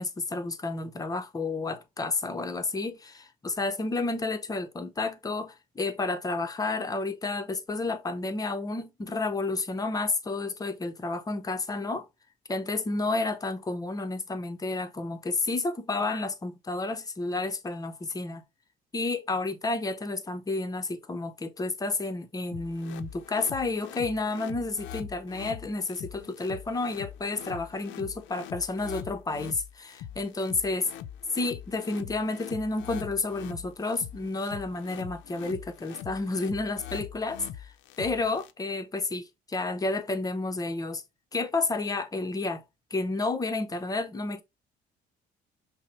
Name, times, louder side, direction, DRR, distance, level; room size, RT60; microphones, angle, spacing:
voice 1, 0.0-12.1 12.5-18.4 18.9-30.9 31.3-37.7 38.0-41.0 41.3-42.6 42.9-44.4, left 3 dB, 20° left, 0.6 m, -31 dB
sound 1, 22.5-38.5, left 10 dB, 75° left, 0.4 m, -43 dB
5.5 x 2.0 x 3.0 m
cardioid pair, 105°, 19 cm